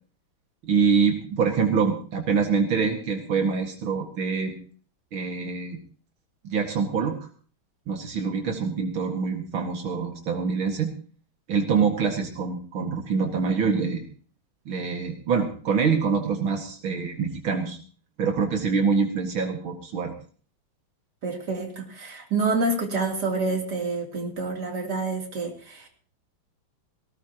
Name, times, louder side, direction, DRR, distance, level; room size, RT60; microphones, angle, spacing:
voice 1, 0.6-4.5 5.1-5.8 6.4-7.2 7.9-10.9 11.5-14.0 14.7-17.8 18.2-20.1, right 5 dB, 85° right, 3 dB, 2.8 m, -25 dB
voice 2, 21.2-25.9, right 3 dB, 55° right, 1 dB, 3.8 m, -28 dB
19.0 x 18.5 x 3.0 m, 0.42 s
omnidirectional pair, 2.2 m